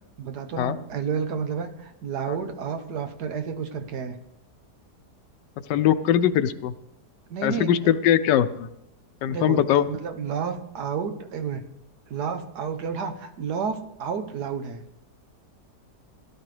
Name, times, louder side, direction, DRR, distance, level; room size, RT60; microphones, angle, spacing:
voice 1, 0.2-4.2 7.3-7.7 9.3-11.6 12.1-14.8, right 6 dB, 70° right, 7 dB, 1.5 m, -31 dB
voice 2, 5.7-6.7 7.4-8.7 9.2-9.8, left 10 dB, 90° left, 12 dB, 1.3 m, -21 dB
17.5 x 11.0 x 3.3 m, 0.81 s
omnidirectional pair, 1.8 m